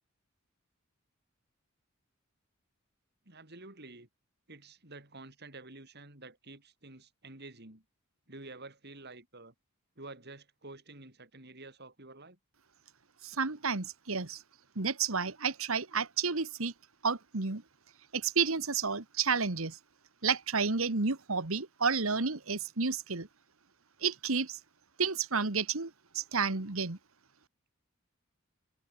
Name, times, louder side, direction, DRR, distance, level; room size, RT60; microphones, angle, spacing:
voice 1, 3.3-4.1 4.5-7.8 8.3-9.5 10.0-12.4, right 2 dB, 50° right, 5.8 m, -49 dB
voice 2, 13.2-14.4 14.8-16.7 17.0-17.6 18.1-19.8 20.2-23.3 24.0-24.6 25.0-27.0, right 5 dB, 70° right, 1.7 m, -31 dB
head